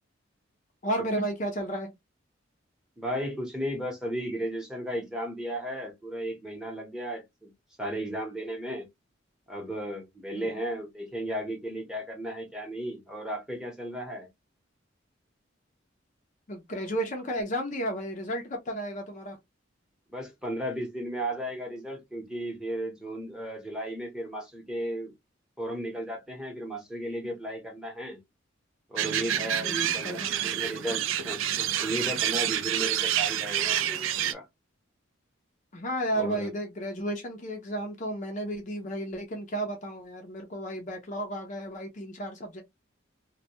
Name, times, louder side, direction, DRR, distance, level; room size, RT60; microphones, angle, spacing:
voice 1, 0.8-1.9 10.3-10.5 16.5-19.4 29.6-30.5 35.7-42.6, right 1 dB, 40° left, 0.5 m, -33 dB
voice 2, 3.0-7.5 7.8-8.9 9.5-14.3 20.1-25.1 25.6-28.2 28.9-34.5 36.1-36.5, right 1 dB, 5° right, 0.8 m, -35 dB
sound 1, 29.0-34.3, right 10 dB, 80° right, 0.3 m, -28 dB
2.2 x 2.1 x 2.7 m
head